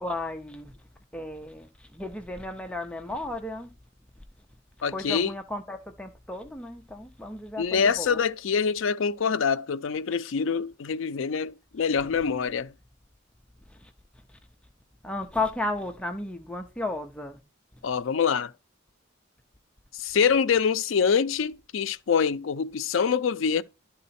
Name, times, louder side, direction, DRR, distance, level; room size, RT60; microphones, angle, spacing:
voice 1, 0.0-0.7 1.1-3.7 4.9-8.2 13.7-13.9 15.0-17.4, left 2 dB, 5° left, 0.6 m, -34 dB
voice 2, 4.8-5.3 7.6-12.7 17.8-18.5 19.9-23.6, left 6 dB, 70° left, 0.4 m, -25 dB
11.0 x 3.8 x 4.2 m
head